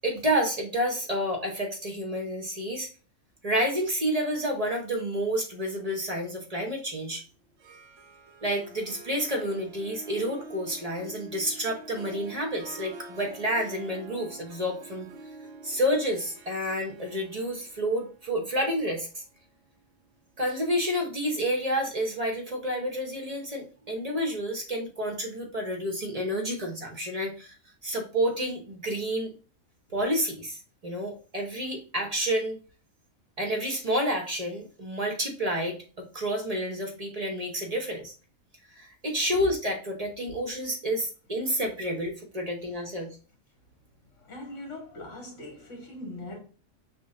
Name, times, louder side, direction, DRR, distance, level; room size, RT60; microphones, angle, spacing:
voice 1, 0.0-2.9 3.4-7.2 8.4-15.1 15.6-19.2 20.4-27.5 27.8-29.4 29.9-32.6 33.4-38.1 38.7-43.2, equal, 35° right, 0.8 m, -29 dB
Harp, 7.5-20.4, right 2 dB, 65° right, 0.9 m, -47 dB
voice 2, 44.2-46.4, left 1 dB, 65° left, 1.9 m, -41 dB
6.0 x 2.2 x 3.8 m
omnidirectional pair, 1.4 m